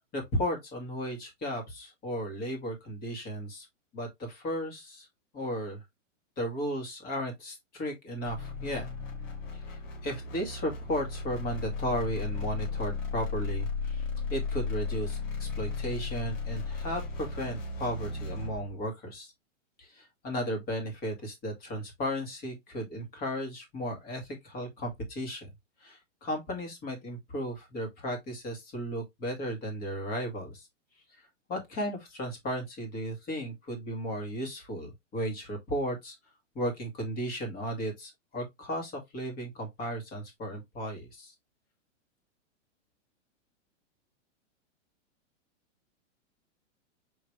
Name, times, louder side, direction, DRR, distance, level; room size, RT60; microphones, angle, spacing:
voice 1, 0.1-3.7 3.9-5.1 5.3-5.8 6.4-8.9 9.5-19.3 19.8-25.5 25.8-30.7 31.2-36.2 36.6-41.3, equal, 25° left, 1.9 m, -35 dB
sound 1, 8.2-18.7, left 4 dB, 85° left, 2.9 m, -35 dB
5.0 x 3.2 x 3.1 m
hypercardioid pair, 145°, 38 cm